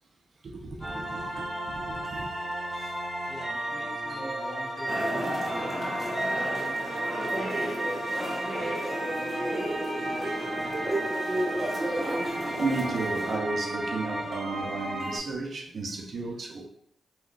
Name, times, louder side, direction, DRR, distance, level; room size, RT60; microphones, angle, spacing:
voice 1, 0.4-2.9 3.2-3.8 4.2-4.5 12.6-16.7, right 3 dB, 60° right, 0.5 m, -34 dB
sound 1, 0.8-15.2, right 1 dB, 5° right, 1.3 m, -33 dB
voice 2, 3.3-5.9 6.3-9.5 9.9-11.7, left 1 dB, 20° left, 1.2 m, -46 dB
sound 2, 4.9-13.4, right 1 dB, 30° right, 1.0 m, -32 dB
3.6 x 2.2 x 2.4 m
cardioid pair, 75°, 0 cm